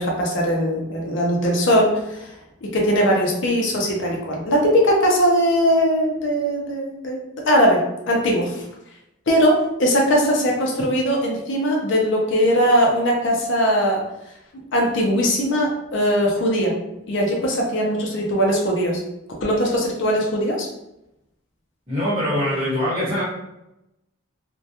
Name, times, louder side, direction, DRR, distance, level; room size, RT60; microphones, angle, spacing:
voice 1, 0.0-2.3 2.6-8.6 9.3-14.0 14.7-16.7 17.1-19.0 19.4-20.7, equal, 55° left, -1 dB, 0.5 m, -20 dB
voice 2, 21.9-23.2, left 1 dB, 25° right, -9 dB, 1.2 m, -23 dB
2.2 x 2.1 x 2.8 m, 0.87 s
head